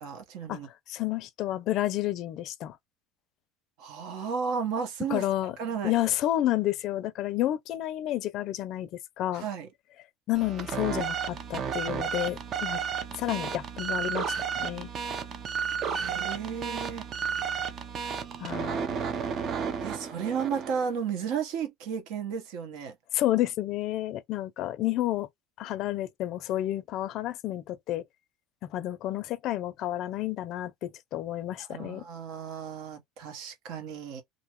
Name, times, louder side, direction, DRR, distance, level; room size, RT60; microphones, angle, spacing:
voice 1, 0.0-0.7 3.8-5.2 5.6-5.9 9.3-9.7 15.8-17.1 18.8-19.0 19.8-22.9 31.7-34.2, right 6 dB, 70° right, 1.0 m, -33 dB
voice 2, 0.9-2.8 5.1-5.6 5.8-8.9 9.2-9.4 10.3-12.8 13.2-14.3 14.6-14.9 18.4-18.9 23.1-25.3 25.6-28.0 28.6-32.0, left 14 dB, 55° left, 0.4 m, -30 dB
sound 1, 10.3-20.9, right 7 dB, 40° right, 0.5 m, -32 dB
2.6 x 2.1 x 2.9 m
supercardioid pair, 125°, 0 cm